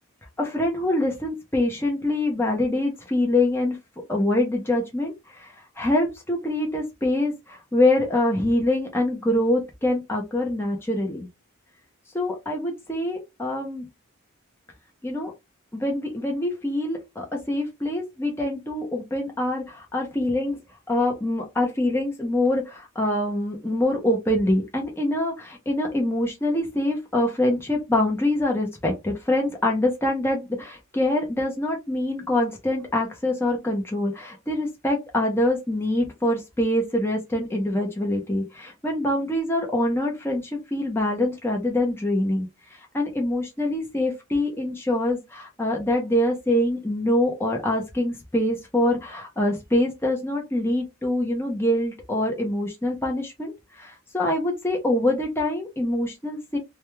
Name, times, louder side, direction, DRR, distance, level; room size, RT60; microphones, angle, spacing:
voice 1, 0.4-3.8 4.1-11.3 12.1-13.9 15.0-15.3 15.7-20.6 20.9-42.5 42.9-53.5 53.8-56.6, left 1 dB, 10° left, 0.6 m, -25 dB
2.3 x 2.2 x 3.0 m
head